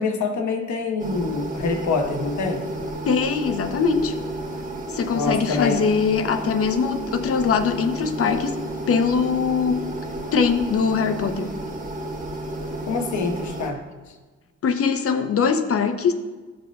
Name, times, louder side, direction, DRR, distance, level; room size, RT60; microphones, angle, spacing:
voice 1, 0.0-2.6 5.1-5.8 12.9-13.8, left 4 dB, 70° left, 3 dB, 1.2 m, -25 dB
sound 1, 1.0-13.7, right 1 dB, 25° right, 1.4 m, -32 dB
voice 2, 3.0-4.1 4.9-8.6 8.9-10.0 10.3-11.5 14.6-16.1, left 5 dB, 50° left, 8 dB, 0.8 m, -22 dB
13.5 x 5.1 x 2.4 m, 1.3 s
cardioid pair, 90°, 30 cm